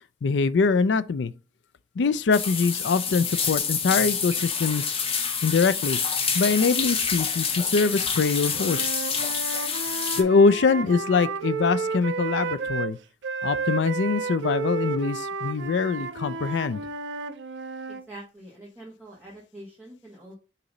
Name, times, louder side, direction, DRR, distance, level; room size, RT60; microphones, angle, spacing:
voice 1, 0.2-1.3 2.0-5.0 5.4-6.0 6.3-9.1 10.2-13.0 13.4-16.8, left 4 dB, 70° left, 0.4 m, -23 dB
sound 1, 2.3-10.2, left 6 dB, 30° left, 0.9 m, -27 dB
Wind instrument woodwind instrument, 8.5-12.9 13.2-18.0, right 5 dB, 75° right, 0.5 m, -32 dB
voice 2, 17.9-20.4, right 1 dB, 10° right, 1.5 m, -45 dB
6.7 x 3.0 x 5.2 m
head